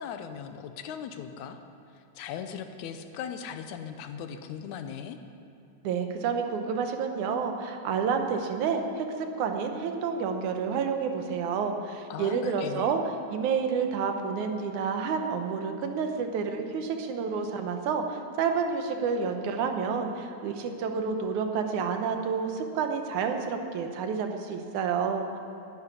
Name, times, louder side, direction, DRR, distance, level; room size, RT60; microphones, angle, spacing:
voice 1, 0.0-1.6 2.2-5.2 12.1-12.9, left 8 dB, 85° left, 8 dB, 2.2 m, -38 dB
voice 2, 5.8-13.0 13.3-25.4, right 6 dB, 80° right, 5 dB, 2.5 m, -29 dB
11.0 x 9.6 x 9.7 m, 2.7 s
omnidirectional pair, 3.4 m